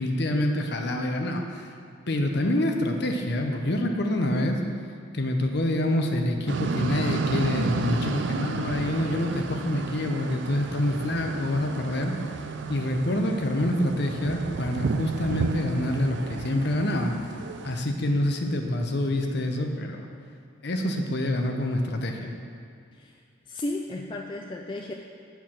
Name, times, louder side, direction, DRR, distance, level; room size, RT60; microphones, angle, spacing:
voice 1, 0.0-1.7 2.1-4.6 5.1-12.1 12.7-17.1 17.6-20.1 20.6-22.3, left 1 dB, 50° left, 3 dB, 0.7 m, -26 dB
sound 1, 6.5-17.8, right 4 dB, 55° right, 0.4 m, -32 dB
voice 2, 23.5-24.9, left 2 dB, 25° left, 1 dB, 0.3 m, -34 dB
8.5 x 4.6 x 5.8 m, 2.3 s
head